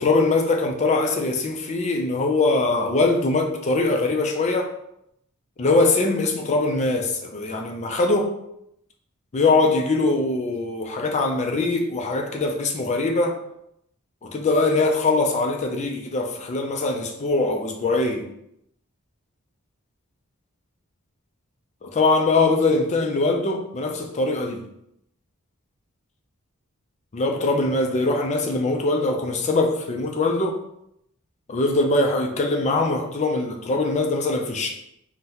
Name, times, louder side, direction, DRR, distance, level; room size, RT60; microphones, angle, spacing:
voice 1, 0.0-4.7 5.6-8.3 9.3-13.4 14.2-18.3 21.8-24.6 27.1-30.6 31.5-34.7, left 3 dB, 30° left, 2 dB, 0.4 m, -22 dB
3.9 x 2.1 x 2.8 m, 0.78 s
head